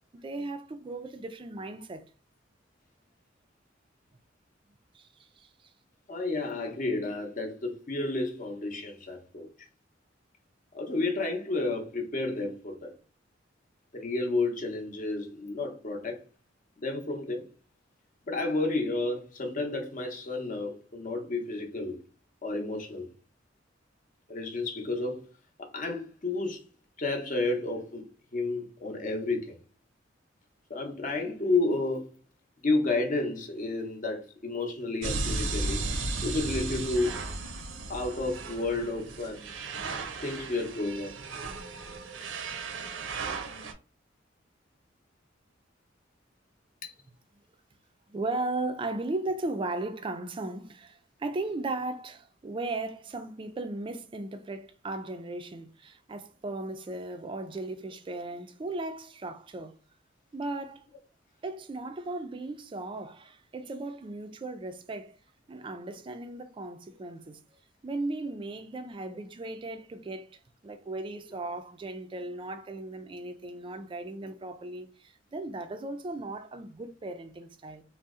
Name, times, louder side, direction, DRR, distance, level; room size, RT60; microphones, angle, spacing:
voice 1, 0.1-2.1 4.9-5.5 48.1-59.8 60.3-60.9 61.4-65.2 65.5-67.4 67.8-77.8, right 2 dB, 25° right, 0.3 m, -36 dB
voice 2, 6.1-9.5 10.7-12.9 13.9-16.2 16.8-17.5 18.3-22.0 22.4-23.1 24.3-25.2 25.6-26.6 27.0-28.0 28.3-29.6 30.7-32.1 32.6-35.8 36.2-37.2 37.9-39.5 40.2-41.2 46.8-46.9, left 2 dB, 45° left, 0.7 m, -31 dB
sound 1, 35.0-43.7, right 3 dB, 80° right, 0.5 m, -35 dB
2.6 x 2.0 x 3.5 m
head